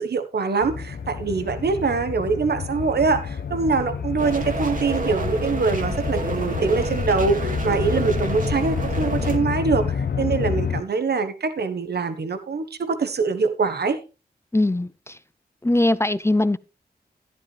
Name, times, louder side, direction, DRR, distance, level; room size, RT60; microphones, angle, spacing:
voice 1, 0.0-14.0, right 4 dB, 70° right, 1.4 m, -24 dB
sound 1, 0.6-10.8, left 6 dB, 65° left, 1.0 m, -28 dB
sound 2, 4.2-9.4, right 3 dB, 50° right, 2.2 m, -30 dB
voice 2, 14.5-15.2 15.6-16.6, left 1 dB, 15° left, 0.6 m, -21 dB
12.0 x 10.5 x 3.4 m
cardioid pair, 50°, 17 cm